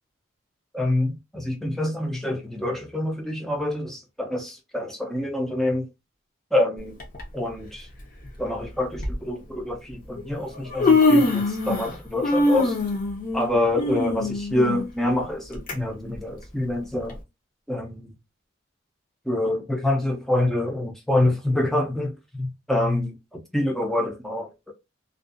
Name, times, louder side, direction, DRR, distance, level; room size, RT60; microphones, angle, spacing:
voice 1, 0.7-5.9 6.5-7.0 7.3-7.9 8.4-12.8 13.3-17.2 17.7-18.1 19.2-24.7, left 1 dB, ahead, 0.5 m, -26 dB
Human voice, 7.0-7.2 8.3-8.4 9.0-9.1 10.2-10.3 10.5-12.0 12.2-15.7 16.1-16.2 17.1-17.2, left 2 dB, 45° left, 0.8 m, -22 dB
2.5 x 2.3 x 2.4 m
head